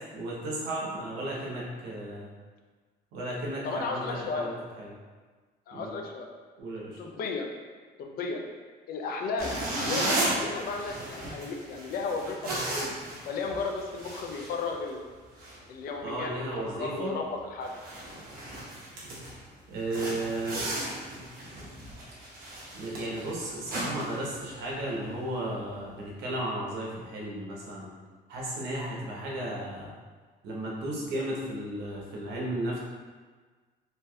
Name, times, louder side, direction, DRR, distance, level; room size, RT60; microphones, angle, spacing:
voice 1, 0.1-2.3 3.1-4.9 5.7-5.9 6.6-7.0 16.0-17.1 19.7-20.6 22.7-27.9 28.3-29.9 30.4-32.8, right 1 dB, 85° right, -4 dB, 0.8 m, -34 dB
voice 2, 3.6-4.5 5.7-6.3 7.0-7.5 8.0-8.4 8.9-12.5 13.2-15.0 15.7-17.7, left 4 dB, 60° left, 2 dB, 0.4 m, -34 dB
sound 1, 9.4-15.1 15.4-15.6 16.1-16.3 16.7-16.8 17.3-17.4 17.6-19.4 19.9-24.9, right 1 dB, 60° right, 1.0 m, -35 dB
3.3 x 2.6 x 2.2 m, 1.4 s
cardioid pair, 110°, 17 cm